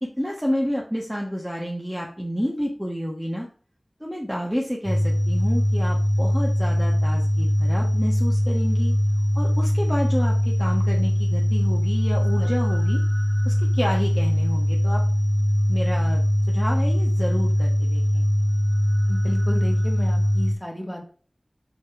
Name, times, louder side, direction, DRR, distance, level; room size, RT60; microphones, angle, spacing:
voice 1, 0.0-3.5 4.0-8.9 9.3-13.0 13.4-15.0 15.7-16.2 16.5-18.2, equal, 5° right, -2 dB, 1.4 m, -29 dB
sound 1, 4.8-20.5, equal, 20° right, 3.5 m, -21 dB
voice 2, 19.1-21.1, equal, 15° left, 0 dB, 2.5 m, -32 dB
7.2 x 4.2 x 4.7 m, 0.42 s
wide cardioid pair, 45°, 0 cm